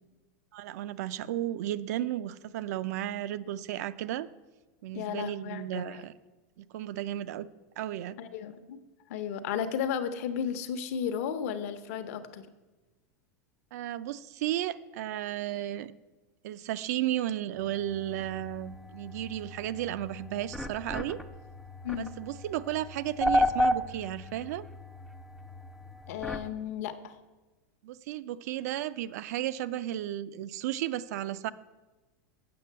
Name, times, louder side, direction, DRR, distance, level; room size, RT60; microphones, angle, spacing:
voice 1, 0.5-4.3 4.8-6.1 6.6-7.5 7.8-8.2 13.7-15.9 16.4-21.2 21.9-24.7 27.8-31.5, right 13 dB, 70° right, 15 dB, 0.4 m, -34 dB
voice 2, 4.9-6.1 8.2-8.8 9.1-12.5 21.8-22.1 26.1-27.2, left 8 dB, 60° left, 9 dB, 0.8 m, -34 dB
sound 1, 17.6-26.5, left 1 dB, ahead, 0.4 m, -33 dB
7.7 x 6.0 x 7.5 m, 1.2 s
supercardioid pair, 160°, 9 cm